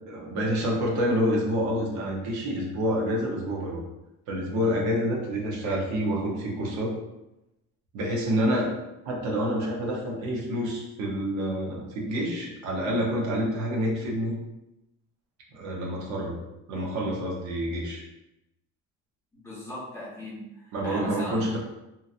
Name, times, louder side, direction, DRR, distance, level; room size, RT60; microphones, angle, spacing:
voice 1, 0.1-3.8 4.3-6.9 7.9-8.7 9.1-14.3 15.5-16.3 16.7-18.0 20.7-21.6, equal, 70° right, -2 dB, 0.8 m, -28 dB
voice 2, 19.3-21.6, left 1 dB, 10° left, -9 dB, 0.8 m, -38 dB
2.8 x 2.6 x 2.5 m, 0.90 s
cardioid pair, 170°, 29 cm